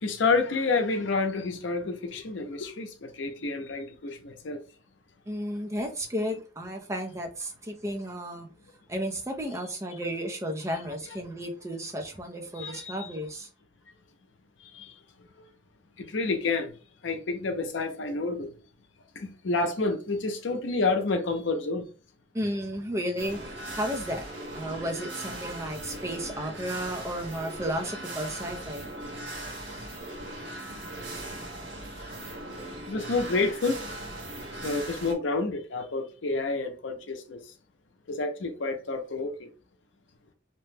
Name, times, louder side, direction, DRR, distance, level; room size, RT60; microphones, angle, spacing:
voice 1, 0.0-4.6 12.6-13.1 14.6-14.9 16.0-16.7 17.0-18.5 19.2-21.9 32.9-33.8 34.6-37.4 38.1-39.5, left 3 dB, 75° left, 0.6 m, -29 dB
voice 2, 5.3-8.5 8.9-13.5 22.3-24.3 24.5-28.9, equal, 15° right, 0.5 m, -33 dB
sound 1, 23.2-35.1, right 1 dB, 65° right, 1.1 m, -39 dB
2.9 x 2.1 x 3.2 m
head